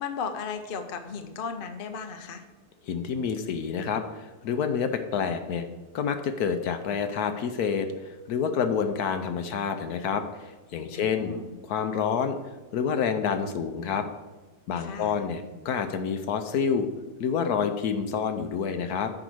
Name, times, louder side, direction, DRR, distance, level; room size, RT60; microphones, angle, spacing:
voice 1, 0.0-2.4 10.9-11.6 14.8-15.3, left 5 dB, 45° left, 6 dB, 0.7 m, -36 dB
voice 2, 2.9-5.7 5.9-11.3 11.6-12.4 12.7-14.1 14.7-16.9 17.2-19.1, left 6 dB, 70° left, 7 dB, 1.2 m, -28 dB
9.2 x 5.0 x 6.2 m, 1.2 s
omnidirectional pair, 1.8 m